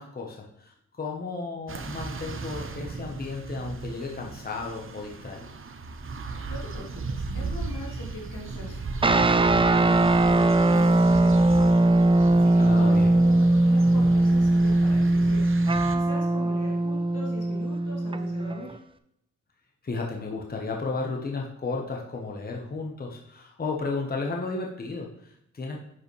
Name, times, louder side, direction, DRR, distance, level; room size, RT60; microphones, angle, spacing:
voice 1, 0.0-5.5 12.6-13.2 19.8-25.8, left 3 dB, 30° left, 0 dB, 1.1 m, -33 dB
sound 1, 1.7-16.0, right 3 dB, 45° right, 0.8 m, -36 dB
voice 2, 6.5-11.7 12.1-15.5 15.9-18.8, left 1 dB, 85° left, -4 dB, 2.8 m, -42 dB
sound 2, 9.0-18.7, right 2 dB, 20° right, 0.4 m, -20 dB
9.8 x 5.1 x 3.3 m, 0.77 s
wide cardioid pair, 100°, 30 cm